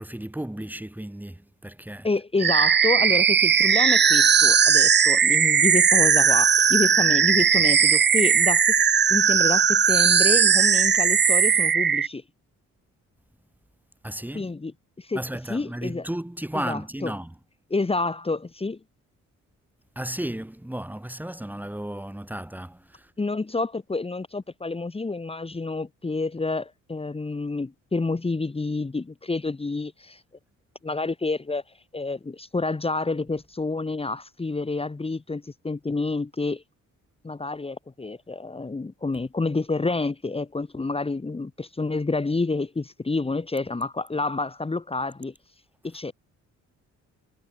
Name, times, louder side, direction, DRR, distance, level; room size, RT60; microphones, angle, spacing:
voice 1, 0.0-2.1 14.0-14.5 15.1-17.3 20.0-23.1, right 1 dB, 5° right, 2.3 m, -34 dB
voice 2, 2.0-8.7 9.1-12.2 14.3-15.2 15.5-16.1 16.5-17.1 17.7-18.8 23.2-30.2 30.8-31.6 31.9-36.6 37.2-45.3 45.8-46.1, left 3 dB, 20° left, 1.9 m, -28 dB
sound 1, 2.4-12.1, right 7 dB, 35° right, 1.0 m, -18 dB
cardioid pair, 90°, 30 cm